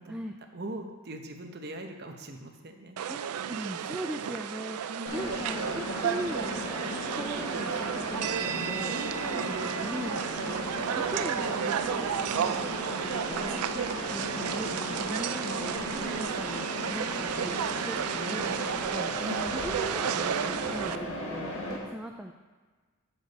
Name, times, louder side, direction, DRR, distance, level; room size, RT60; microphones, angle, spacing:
voice 1, 0.5-3.0 4.9-5.5 8.9-9.5 13.7-14.0 15.9-16.2 19.2-19.5, right 1 dB, 50° right, 4 dB, 0.8 m, -41 dB
sound 1, 3.0-21.0, right 9 dB, 85° right, 0.4 m, -33 dB
voice 2, 3.5-4.8 5.1-6.8 7.2-9.0 9.4-13.0 13.3-13.7 14.1-19.1 19.5-22.3, right 1 dB, 5° right, 2 dB, 0.3 m, -40 dB
Mechanisms, 5.1-21.8, left 1 dB, 70° left, 1.6 m, -36 dB
8.3 x 7.2 x 4.0 m, 1.4 s
head